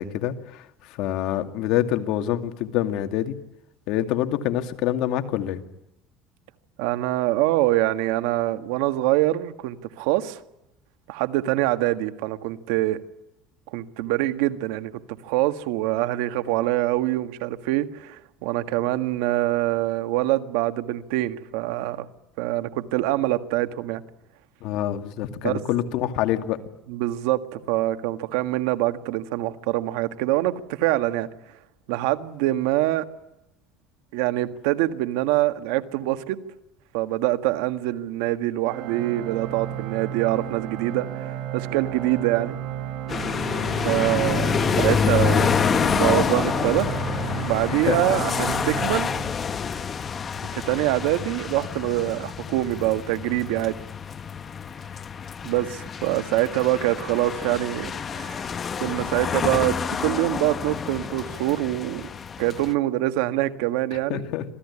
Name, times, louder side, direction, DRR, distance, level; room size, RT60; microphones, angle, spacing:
voice 1, 0.0-3.3 3.9-5.6 24.6-26.6 47.7-48.2 64.1-64.4, left 12 dB, 70° left, 7 dB, 2.3 m, -26 dB
voice 2, 6.8-10.4 11.1-13.0 13.7-22.1 22.4-24.0 25.4-25.6 26.9-31.3 31.9-33.0 34.1-36.4 36.9-42.6 43.7-45.6 45.8-49.1 50.5-53.8 55.4-58.5 58.8-62.0 62.4-64.2, right 16 dB, 90° right, 9 dB, 1.7 m, -25 dB
Organ, 38.6-49.8, right 11 dB, 65° right, 4.3 m, -33 dB
sound 1, 43.1-62.7, left 6 dB, 30° left, 1.3 m, -27 dB
26.5 x 17.5 x 9.9 m, 0.88 s
cardioid pair, 125°, 0 cm